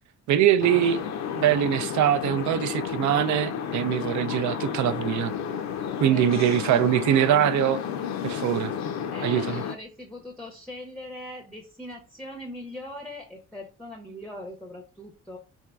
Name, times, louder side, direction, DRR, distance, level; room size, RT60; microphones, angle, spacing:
voice 1, 0.3-1.0 1.3-5.3 6.0-7.8 8.2-8.7 9.2-9.6, right 11 dB, 70° right, 0.5 m, -23 dB
sound 1, 0.6-9.8, left 8 dB, 65° left, 0.5 m, -32 dB
voice 2, 6.1-6.8 9.1-15.4, left 1 dB, 5° left, 0.6 m, -41 dB
3.6 x 3.1 x 2.2 m
cardioid pair, 90°, 30 cm